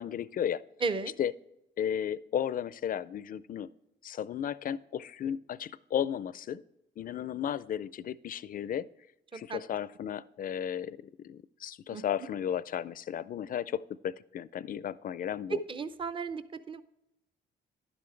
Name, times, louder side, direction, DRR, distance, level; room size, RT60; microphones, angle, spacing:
voice 1, 0.0-0.6 1.2-1.3 1.8-3.7 4.0-6.6 7.0-8.9 9.3-15.6, left 9 dB, 45° left, 18 dB, 0.4 m, -34 dB
voice 2, 0.8-1.1 9.3-9.6 11.9-12.0 15.7-16.4 16.7-16.8, right 4 dB, 25° right, 12 dB, 0.6 m, -34 dB
11.0 x 7.0 x 3.3 m, 0.88 s
cardioid pair, 90°, 20 cm